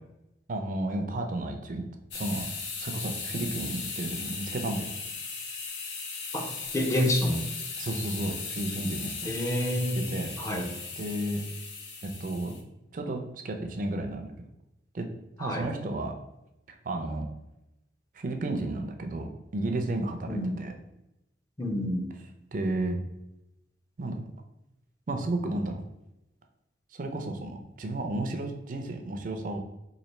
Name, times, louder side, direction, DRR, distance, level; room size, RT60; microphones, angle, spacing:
voice 1, 0.5-1.8 2.1-2.4 2.8-4.9 7.8-9.3 10.1-10.3 11.0-11.4 12.0-12.6 12.9-14.5 14.9-15.1 15.4-16.1 16.7-17.3 18.1-20.7 22.5-23.0 24.0-24.2 25.1-25.8 26.9-29.6, right 2 dB, 50° right, 5 dB, 0.4 m, -32 dB
sound 1, 2.1-12.6, left 4 dB, 80° left, 0.7 m, -37 dB
voice 2, 6.3-7.4 9.3-10.0 10.4-10.7 15.4-15.7 20.3-20.5 21.6-22.1, left 1 dB, 20° left, 2 dB, 0.5 m, -28 dB
3.1 x 2.5 x 4.1 m, 0.92 s
head